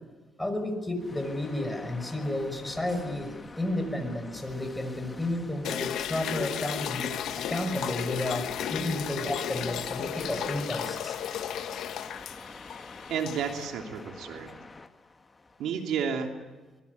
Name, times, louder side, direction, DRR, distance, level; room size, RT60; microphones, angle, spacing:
voice 1, 0.4-11.2, left 1 dB, 10° left, 7 dB, 5.9 m, -32 dB
sound 1, 1.0-16.1, left 3 dB, 25° left, 1.8 m, -47 dB
sound 2, 5.6-13.6, left 10 dB, 80° left, 1.4 m, -34 dB
voice 2, 13.1-14.5 15.6-16.3, right 7 dB, 80° right, 3 dB, 3.1 m, -31 dB
24.5 x 22.0 x 9.6 m, 1.2 s
cardioid pair, 90°, 0 cm